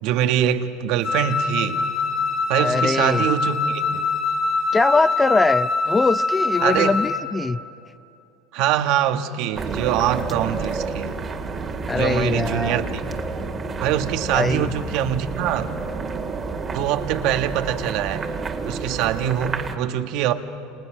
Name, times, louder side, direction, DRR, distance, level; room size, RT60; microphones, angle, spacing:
voice 1, 0.0-1.8 2.5-4.0 6.6-7.0 8.5-11.1 11.9-13.0 13.8-15.7 16.7-18.3 18.6-20.3, right 10 dB, 65° right, 1.5 m, -23 dB
Wind instrument woodwind instrument, 1.0-7.3, left 3 dB, 45° left, 3.4 m, -23 dB
voice 2, 2.6-3.3 4.7-7.6 11.9-12.8 14.3-14.7, left 3 dB, 15° left, 0.5 m, -22 dB
sound 1, 9.5-19.8, right 4 dB, 25° right, 2.1 m, -30 dB
28.5 x 28.5 x 6.3 m
supercardioid pair, 125°, 0 cm